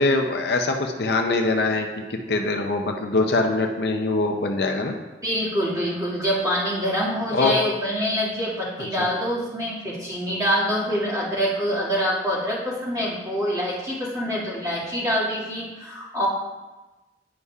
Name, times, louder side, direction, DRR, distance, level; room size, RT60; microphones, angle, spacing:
voice 1, 0.0-4.9 7.3-7.5 8.8-9.1, left 2 dB, 60° left, 3 dB, 0.5 m, -23 dB
voice 2, 5.2-16.3, equal, 20° right, -9 dB, 2.0 m, -25 dB
9.7 x 5.4 x 2.4 m, 1.1 s
head